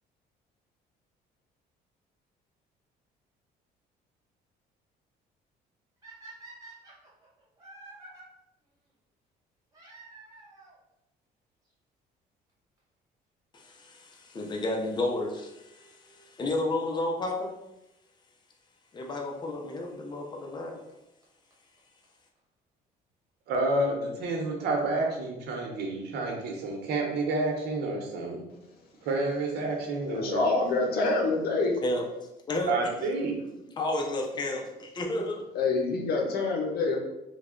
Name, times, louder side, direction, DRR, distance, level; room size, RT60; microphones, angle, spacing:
sound 1, 6.0-8.2 9.7-10.8 11.7-11.8 12.5-12.6 12.8-12.9 14.8-15.0 17.8-17.9 19.0-19.1 20.5-20.6 20.9-21.0 21.2-21.3 21.5-21.6 21.8-21.9 22.0-22.1 22.4-22.5, right 3 dB, 20° right, 1.4 m, -49 dB
voice 1, 13.5-17.5 18.9-20.8 31.8-32.0 32.5-32.9 33.8-35.4, left 2 dB, 25° left, 0 dB, 0.6 m, -32 dB
voice 2, 23.5-28.4 29.0-30.4 32.7-33.4, right 2 dB, 75° right, 1 dB, 0.9 m, -29 dB
voice 3, 30.0-31.8 35.5-37.0, left 3 dB, 65° left, 2 dB, 0.8 m, -26 dB
3.2 x 2.3 x 3.7 m, 0.91 s
cardioid pair, 110°, 17 cm